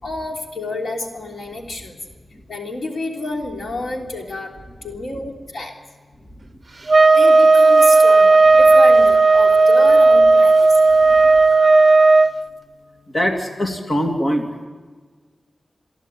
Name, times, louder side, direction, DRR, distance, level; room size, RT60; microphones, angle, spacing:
voice 1, 0.0-2.0 2.5-4.5 4.8-5.7 7.1-10.8, left 2 dB, 85° left, 1 dB, 3.3 m, -29 dB
sound 1, 6.9-12.3, right 3 dB, 45° right, 0.7 m, -12 dB
voice 2, 13.1-14.4, equal, 40° left, 3 dB, 2.6 m, -22 dB
28.0 x 11.0 x 9.2 m, 1.4 s
wide cardioid pair, 95°, 0 cm